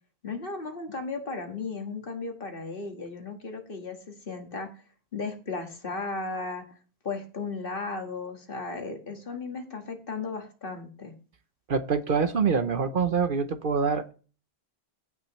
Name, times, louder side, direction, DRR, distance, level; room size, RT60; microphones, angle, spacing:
voice 1, 0.2-4.7 5.1-6.6 7.0-11.1, left 3 dB, 55° left, 4 dB, 1.9 m, -35 dB
voice 2, 11.7-14.1, right 5 dB, 55° right, 10 dB, 0.9 m, -25 dB
15.5 x 6.1 x 3.1 m, 0.37 s
omnidirectional pair, 1.1 m